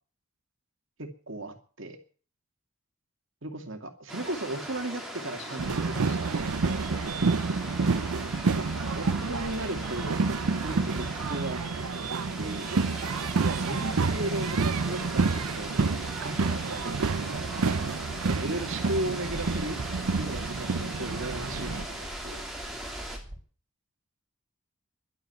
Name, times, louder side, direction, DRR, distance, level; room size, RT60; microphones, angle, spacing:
voice 1, 1.0-2.0 3.4-6.3 7.4-7.7 8.5-8.7 9.0-10.2 10.6-12.1 12.4-12.7 13.4-17.8 18.3-19.8 20.2-22.4, right 1 dB, 60° right, 5 dB, 2.5 m, -36 dB
sound 1, 4.1-23.2, right 1 dB, ahead, 2.9 m, -39 dB
voice 2, 5.2-6.8 21.7-22.0, left 3 dB, 55° left, 7 dB, 2.0 m, -49 dB
sound 2, 5.6-21.8, right 4 dB, 90° right, 0.6 m, -29 dB
Bird / Wind, 14.3-23.4, equal, 35° right, 3.9 m, -48 dB
12.0 x 9.1 x 9.5 m, 0.40 s
head